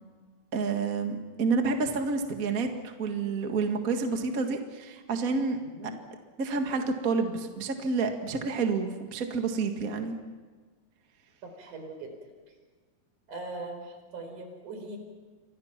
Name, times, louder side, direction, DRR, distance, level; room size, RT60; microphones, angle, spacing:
voice 1, 0.5-5.6 6.4-10.1, right 4 dB, 40° right, 4 dB, 1.3 m, -29 dB
voice 2, 5.6-6.0 11.4-12.1 13.3-15.0, right 2 dB, 55° right, 5 dB, 5.9 m, -40 dB
29.5 x 25.0 x 5.9 m, 1.4 s
omnidirectional pair, 4.4 m